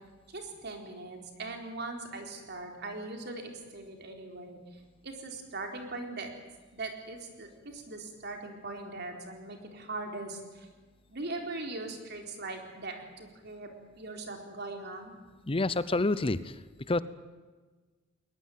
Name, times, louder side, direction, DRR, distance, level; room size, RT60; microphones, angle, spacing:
voice 1, 0.3-6.3 6.7-10.7 11.1-15.1, right 2 dB, 55° right, 3 dB, 4.1 m, -40 dB
voice 2, 15.5-16.5 16.9-17.0, left 2 dB, 30° left, 16 dB, 0.7 m, -27 dB
21.5 x 19.5 x 9.3 m, 1.3 s
head